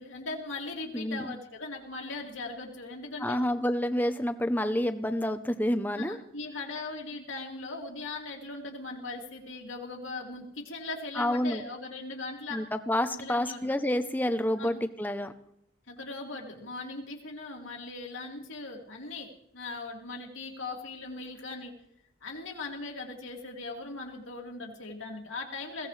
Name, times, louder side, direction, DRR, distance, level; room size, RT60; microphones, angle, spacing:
voice 1, 0.0-3.4 6.0-12.6 13.1-13.6 14.6-14.7 15.9-19.3 19.5-21.7 22.2-25.9, left 3 dB, 85° left, 0 dB, 2.7 m, -39 dB
voice 2, 0.9-1.3 3.2-6.2 11.2-11.6 12.5-15.3, left 1 dB, 10° left, 9 dB, 0.7 m, -28 dB
21.5 x 16.5 x 3.3 m, 0.75 s
head